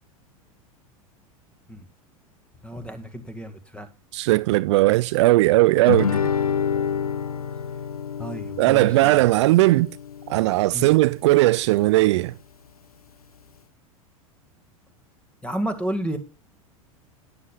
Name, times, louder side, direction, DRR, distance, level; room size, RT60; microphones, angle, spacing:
voice 1, 2.6-3.9 6.7-6.9 8.2-9.2 10.7-10.9 15.4-16.2, right 1 dB, 5° left, 2.0 m, -31 dB
voice 2, 4.1-6.1 8.6-10.0 10.3-12.3, right 19 dB, 55° right, 0.4 m, -18 dB
Guitar, 5.9-10.9, left 7 dB, 90° left, 0.4 m, -28 dB
12.5 x 9.6 x 2.4 m
figure-of-eight pair, 85°, 18 cm